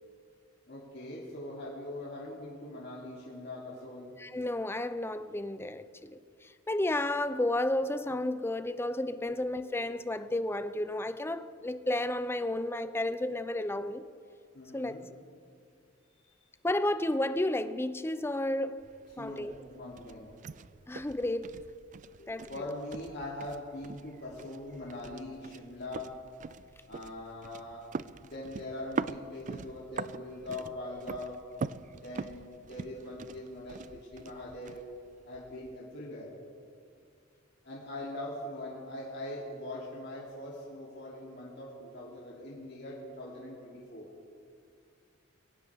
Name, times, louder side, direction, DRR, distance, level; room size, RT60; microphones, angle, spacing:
voice 1, 0.7-4.2 9.3-9.4 14.5-15.1 19.2-20.3 22.2-26.2 26.9-27.9 28.2-31.4 31.9-34.9 35.2-36.3 37.6-44.1, left 1 dB, 60° left, 3.1 m, -42 dB
voice 2, 4.2-14.1 14.7-15.0 16.6-18.9 19.2-19.6 20.9-21.6 22.3-22.6, left 1 dB, 10° left, 0.6 m, -32 dB
sound 1, 18.8-35.8, right 5 dB, 40° right, 0.4 m, -43 dB
23.0 x 17.5 x 3.6 m
head